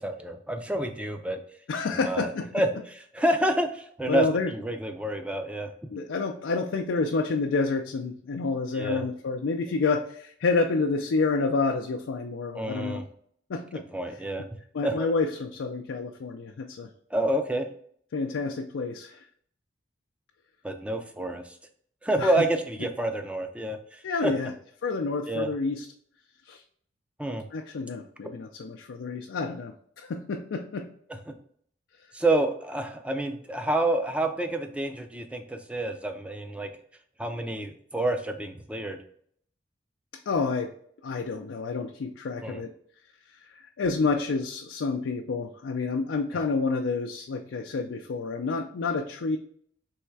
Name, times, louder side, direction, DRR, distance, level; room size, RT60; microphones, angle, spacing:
voice 1, 0.0-1.4 2.0-2.7 3.1-4.3 4.5-5.7 8.7-9.0 12.5-13.1 13.9-14.5 14.8-15.1 17.1-17.7 20.6-21.6 22.0-24.3 25.3-25.5 27.2-27.5 31.3-31.4 32.1-36.7 37.2-39.0 42.4-42.6, right 1 dB, 5° right, 6 dB, 0.4 m, -28 dB
voice 2, 1.7-2.6 4.1-4.5 5.9-13.0 13.5-13.8 14.1-14.2 14.7-16.9 18.1-19.2 22.2-22.3 24.0-24.5 24.8-25.9 26.4-26.6 27.5-30.9 40.3-40.7 41.0-42.7 43.3-49.4, left 4 dB, 90° left, 4 dB, 0.4 m, -29 dB
3.5 x 3.1 x 4.5 m, 0.63 s
head